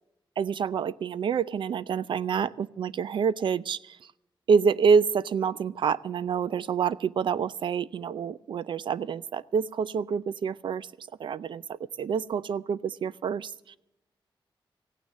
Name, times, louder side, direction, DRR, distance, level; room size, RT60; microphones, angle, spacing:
voice 1, 0.4-4.0 4.5-10.9 11.2-13.8, right 6 dB, 70° right, 18 dB, 0.4 m, -27 dB
15.5 x 9.3 x 7.4 m, 0.87 s
wide cardioid pair, 175°, 9 cm